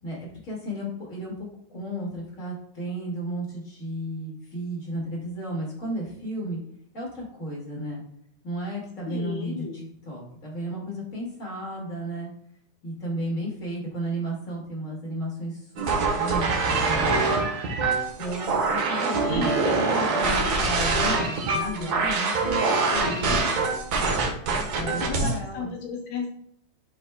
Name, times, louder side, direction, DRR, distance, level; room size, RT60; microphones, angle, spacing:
voice 1, 0.0-6.6 6.9-8.0 8.4-12.3 12.8-17.1 18.2-22.3 24.7-25.7, right 1 dB, 30° left, -3 dB, 1.6 m, -34 dB
voice 2, 9.0-9.8 19.1-20.6 20.9-21.2 21.6-22.0 22.8-23.6 24.8-26.3, left 4 dB, 75° left, 2 dB, 2.8 m, -34 dB
sound 1, 15.8-25.4, right 3 dB, 60° right, 2.0 m, -24 dB
12.5 x 4.2 x 2.3 m, 0.71 s
omnidirectional pair, 4.6 m